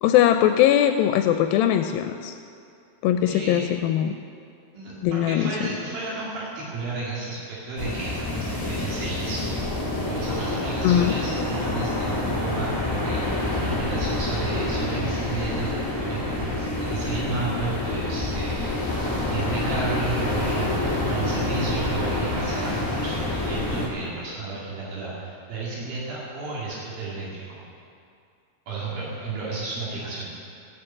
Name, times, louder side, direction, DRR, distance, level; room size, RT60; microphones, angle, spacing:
voice 1, 0.0-2.4 3.0-4.2 5.0-5.7 10.8-11.1, left 11 dB, 85° left, 7 dB, 2.3 m, -20 dB
voice 2, 3.3-3.7 4.7-8.2 8.7-9.5 10.0-19.0 19.3-27.6 28.7-30.3, right 3 dB, 80° right, -6 dB, 4.2 m, -32 dB
sound 1, 7.8-23.9, left 2 dB, 10° left, 1.7 m, -27 dB
14.5 x 7.1 x 8.6 m, 2.4 s
omnidirectional pair, 4.1 m